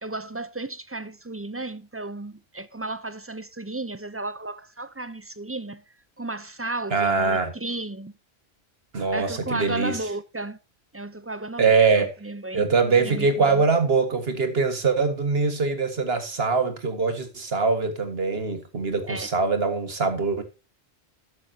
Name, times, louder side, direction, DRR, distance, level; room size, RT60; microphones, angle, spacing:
voice 1, 0.0-5.8 6.2-8.1 9.1-10.6 10.9-13.6 19.1-19.3, right 2 dB, 15° right, 0.5 m, -34 dB
voice 2, 6.9-7.5 8.9-10.0 11.6-12.1 12.5-20.4, right 4 dB, 70° right, 2.0 m, -23 dB
13.0 x 10.0 x 2.8 m
omnidirectional pair, 1.1 m